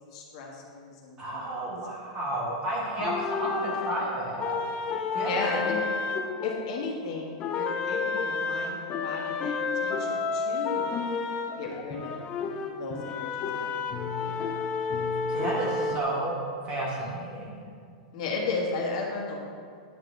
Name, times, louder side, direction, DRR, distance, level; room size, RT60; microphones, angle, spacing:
voice 1, 0.0-1.5 5.1-5.8 6.4-10.9 11.6-12.1 12.8-14.4 18.1-19.5, left 3 dB, 55° left, -1 dB, 1.4 m, -35 dB
voice 2, 1.2-4.6 5.1-5.4 15.3-16.4 16.6-17.6, right 1 dB, 25° right, -4 dB, 1.9 m, -31 dB
Comedy Music Theme, 3.0-7.1 7.4-16.0, left 4 dB, 25° left, 0.5 m, -31 dB
9.6 x 5.1 x 3.7 m, 2.2 s
supercardioid pair, 155°, 4 cm